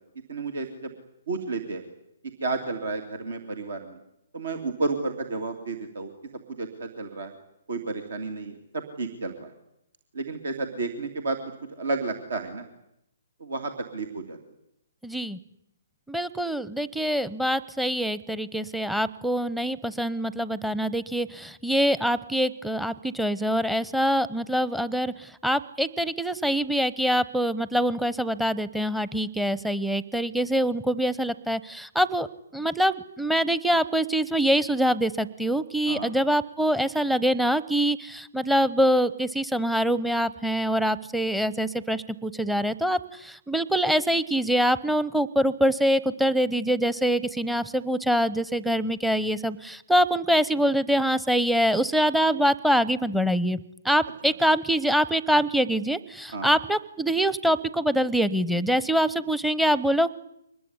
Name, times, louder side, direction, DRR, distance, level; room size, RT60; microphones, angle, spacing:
voice 1, 0.3-0.9 1.3-1.8 2.4-4.0 4.3-6.1 6.6-7.3 7.7-9.5 10.1-11.4 11.7-12.6 13.4-14.4 35.9-36.1 56.3-56.5, right 3 dB, 70° right, 7 dB, 2.8 m, -31 dB
voice 2, 15.0-15.4 16.1-32.3 32.5-60.2, equal, ahead, 18 dB, 0.9 m, -24 dB
24.5 x 20.5 x 9.7 m, 0.81 s
figure-of-eight pair, 130°, 0 cm